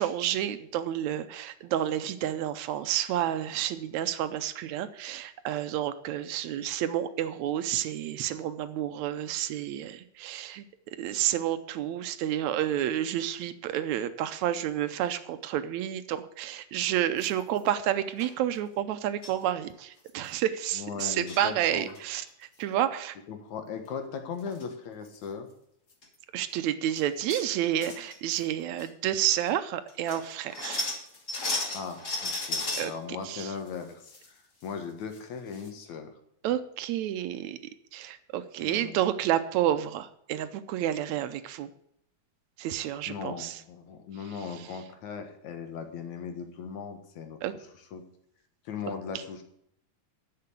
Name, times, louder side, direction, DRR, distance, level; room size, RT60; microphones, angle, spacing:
voice 1, 0.0-10.7 11.0-23.2 26.3-30.8 32.8-32.9 33.3-33.5 36.4-37.6 37.9-41.7 42.6-43.6 47.4-47.5, right 11 dB, 80° right, 11 dB, 1.9 m, -30 dB
sound 1, 17.2-17.6 18.2-18.3 19.2-19.4 19.8-19.9 20.1-20.3 21.0-21.5 21.9-22.3 24.0-24.1 24.4-24.6 25.1-25.2 25.9-26.1 26.5-26.6 27.0-27.5 27.8-28.5 28.8-28.9 29.5-29.6 29.9-32.9 33.4-34.3 34.6-34.7 35.1-35.2 35.5-35.7, left 2 dB, 35° left, 1.4 m, -35 dB
voice 2, 20.7-21.9 23.3-25.5 31.7-36.1 38.6-39.0 43.1-47.4 47.9-48.0 48.7-49.4, left 6 dB, 75° left, 5 dB, 2.8 m, -38 dB
10.5 x 6.8 x 8.1 m, 0.72 s
omnidirectional pair, 3.4 m